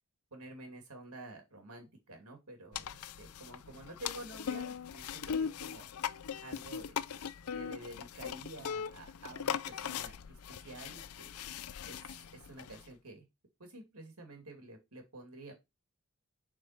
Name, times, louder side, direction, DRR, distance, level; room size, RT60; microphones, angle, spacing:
voice 1, 0.3-5.9 6.4-7.2 7.5-11.3 11.9-12.0 12.3-13.3 13.6-15.5, right 1 dB, 90° right, 4 dB, 2.7 m, -50 dB
sound 1, 2.7-12.9, left 7 dB, 90° left, 0.5 m, -40 dB
7.5 x 4.5 x 4.4 m, 0.22 s
head